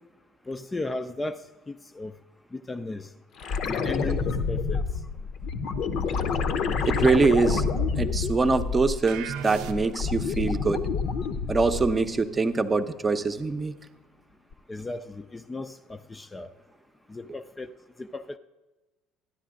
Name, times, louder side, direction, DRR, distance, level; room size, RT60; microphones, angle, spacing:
voice 1, 0.5-1.4 1.7-2.1 2.5-3.1 3.7-4.8 14.7-16.5 17.1-17.7 18.0-18.4, left 2 dB, 20° left, 10 dB, 0.5 m, -35 dB
sound 1, 3.4-9.2 9.6-12.1 14.5-14.6, left 5 dB, 55° left, 0.8 m, -28 dB
voice 2, 6.9-7.6 8.0-10.8 11.5-13.7, right 4 dB, 25° right, 8 dB, 0.8 m, -24 dB
sound 2, 9.1-10.2, right 7 dB, 65° right, 0.6 m, -36 dB
13.0 x 11.0 x 3.7 m, 1.1 s
figure-of-eight pair, 60°, 0 cm